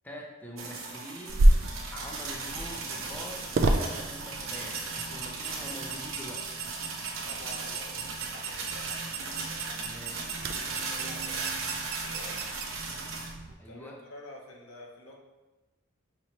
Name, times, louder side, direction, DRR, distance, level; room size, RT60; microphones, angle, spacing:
voice 1, 0.0-1.6 1.9-6.5 9.8-10.3 13.6-14.0, equal, 10° left, -1 dB, 0.4 m, -44 dB
sound 1, 0.6-13.3, right 4 dB, 80° right, 0.7 m, -37 dB
sound 2, 1.3-13.5, right 1 dB, 50° right, 0.3 m, -31 dB
voice 2, 7.2-9.0 9.4-9.9 10.6-12.5 12.8-12.9 13.5-15.2, left 1 dB, 85° left, -1 dB, 0.8 m, -49 dB
5.7 x 3.0 x 2.8 m, 1.1 s
head